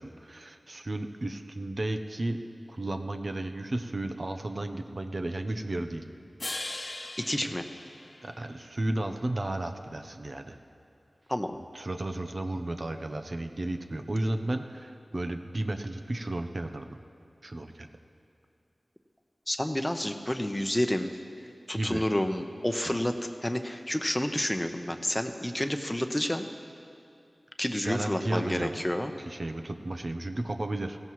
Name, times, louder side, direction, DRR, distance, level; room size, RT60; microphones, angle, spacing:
voice 1, 0.0-2.4 2.7-6.0 7.4-7.5 8.2-10.6 11.7-17.0 17.4-17.9 21.7-22.0 22.8-23.0 27.8-28.8 29.2-31.0, right 1 dB, 55° right, 6 dB, 0.7 m, -33 dB
sound 1, 6.4-8.7, left 2 dB, 55° left, 0.9 m, -39 dB
voice 2, 7.3-7.6 11.3-11.6 19.5-21.1 21.7-23.1 23.4-26.5 27.6-29.1, left 1 dB, 15° left, 7 dB, 0.8 m, -29 dB
16.0 x 15.5 x 3.1 m, 2.6 s
cardioid pair, 40°, 0 cm